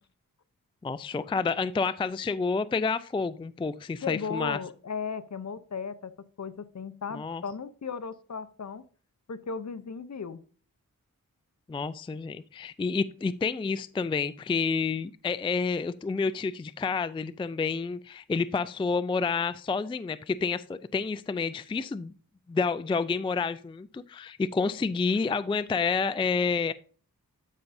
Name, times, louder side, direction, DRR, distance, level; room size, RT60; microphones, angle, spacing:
voice 1, 0.8-4.6 7.1-7.4 11.7-22.1 22.5-26.7, left 4 dB, 15° left, 15 dB, 0.3 m, -29 dB
voice 2, 4.0-6.1 6.4-8.8 9.3-10.4 25.1-25.2, left 5 dB, 55° left, 13 dB, 0.7 m, -36 dB
12.5 x 5.3 x 2.6 m, 0.41 s
wide cardioid pair, 55°, 35 cm